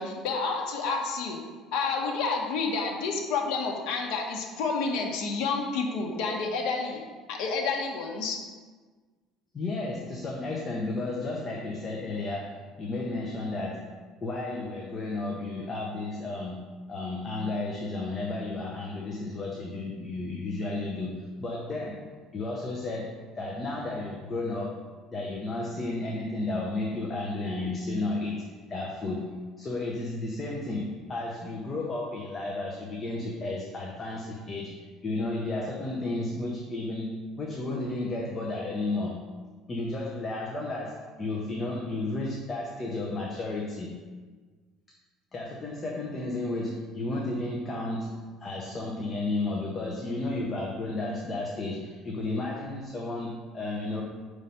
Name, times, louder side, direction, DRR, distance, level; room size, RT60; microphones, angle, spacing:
voice 1, 0.0-1.4 1.7-7.0 7.3-8.4, left 4 dB, 75° left, 1 dB, 1.0 m, -29 dB
voice 2, 9.5-24.8 25.1-29.3 29.6-39.2 39.7-44.0 45.3-54.0, left 2 dB, 20° left, -2 dB, 0.6 m, -33 dB
5.4 x 3.2 x 5.5 m, 1.4 s
cardioid pair, 160°, 0 cm